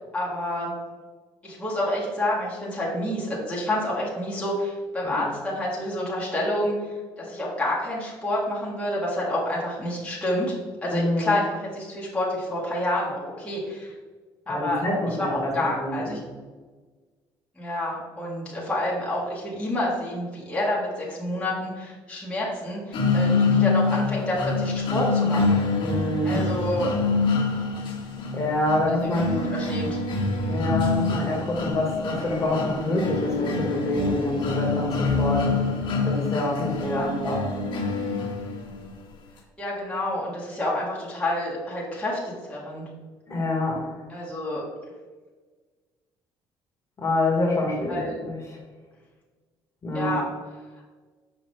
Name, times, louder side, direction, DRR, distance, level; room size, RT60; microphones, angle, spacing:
voice 1, 0.1-0.7 1.4-6.9 7.2-10.6 10.8-13.9 14.5-14.8 15.2-16.2 17.6-25.7 26.2-26.9 28.8-29.1 29.5-30.0 36.9-37.1 39.6-42.8 44.1-44.6 47.9-48.2 49.9-50.2, left 1 dB, 10° left, -6 dB, 1.7 m, -28 dB
voice 2, 10.9-11.4 14.5-16.2 25.8-26.4 28.3-29.5 30.4-35.5 36.0-37.4 43.3-43.9 47.0-48.6 49.8-50.2, left 1 dB, 30° left, -2 dB, 1.8 m, -26 dB
sound 1, 22.9-38.9, left 3 dB, 60° left, 1.7 m, -26 dB
6.1 x 4.8 x 3.3 m, 1.4 s
cardioid pair, 100°, 9 cm